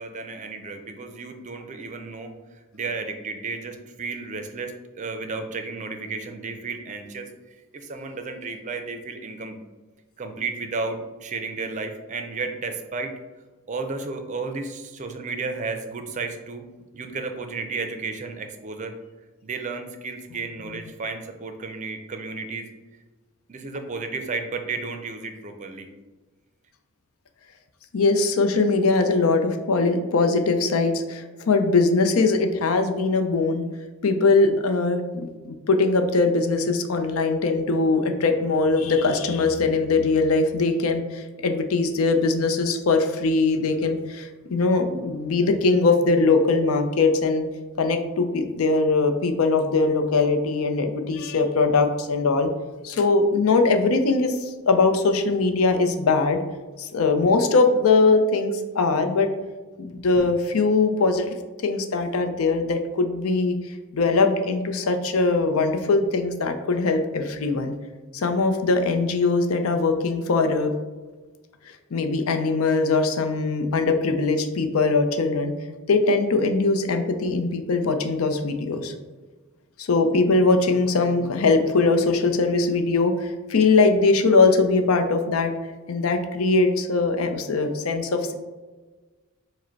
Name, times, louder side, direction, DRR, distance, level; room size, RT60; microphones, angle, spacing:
voice 1, 0.0-2.3 2.7-7.3 7.7-9.6 10.2-13.1 13.7-16.6 16.9-19.0 19.4-22.7 23.5-25.9, right 4 dB, 35° right, 6 dB, 0.4 m, -33 dB
voice 2, 27.9-33.7 34.0-47.4 47.8-52.5 52.8-56.4 56.8-59.3 59.8-63.6 63.9-67.7 68.1-70.7 71.9-75.5 75.9-78.9 79.8-85.5 85.9-88.3, left 3 dB, 85° left, 6 dB, 0.5 m, -21 dB
4.7 x 2.1 x 4.5 m, 1.3 s
head